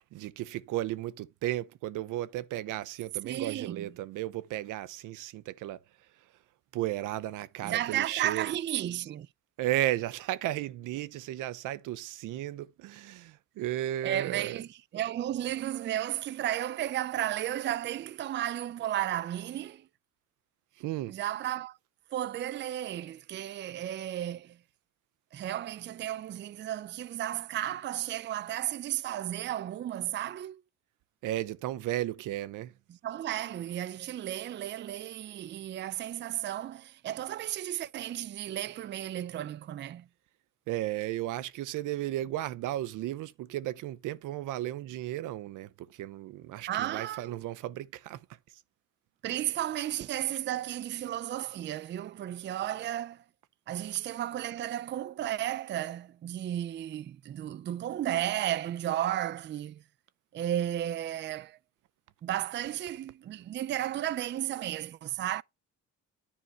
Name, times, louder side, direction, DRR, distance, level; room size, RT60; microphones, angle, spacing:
voice 1, 0.0-5.8 6.7-8.5 9.6-14.6 20.8-21.2 31.2-32.7 40.7-48.2 53.8-54.0, right 14 dB, 90° right, 0.7 m, -34 dB
voice 2, 3.2-3.9 7.6-9.3 14.0-19.9 21.1-21.8 22.1-24.6 25.3-30.6 32.9-40.1 46.7-47.4 49.2-53.2 53.7-59.8 60.3-61.6 62.2-65.4, right 12 dB, 40° right, 0.4 m, -33 dB
9.9 x 4.8 x 3.9 m
cardioid pair, 90°, 30 cm